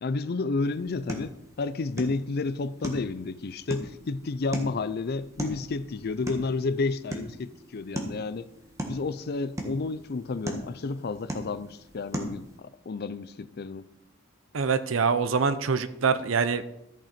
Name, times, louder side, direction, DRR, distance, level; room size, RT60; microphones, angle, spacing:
voice 1, 0.0-8.5 8.9-13.9, left 3 dB, 55° left, 0.5 m, -31 dB
sound 1, 0.6-12.6, right 1 dB, 15° right, 1.5 m, -39 dB
voice 2, 14.5-16.6, right 5 dB, 85° right, 0.6 m, -25 dB
13.5 x 6.0 x 4.3 m
head